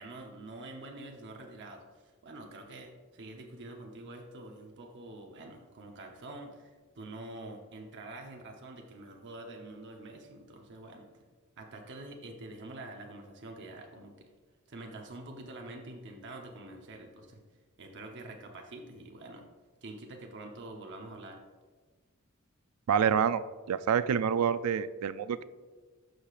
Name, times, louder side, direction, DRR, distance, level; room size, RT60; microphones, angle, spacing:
voice 1, 0.0-11.1 11.6-14.3 14.7-17.4 17.8-19.5 19.8-21.4, right 2 dB, 55° right, 2 dB, 0.8 m, -46 dB
voice 2, 22.9-25.4, right 7 dB, 90° right, 15 dB, 0.4 m, -27 dB
12.5 x 4.9 x 2.4 m, 1.4 s
head